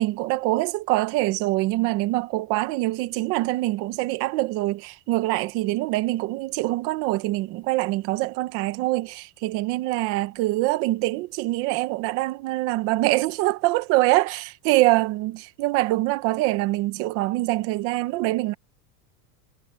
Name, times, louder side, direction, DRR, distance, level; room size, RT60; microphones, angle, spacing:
voice 1, 0.0-18.5, right 19 dB, 30° right, 0.8 m, -24 dB
supercardioid pair, 180°, 43 cm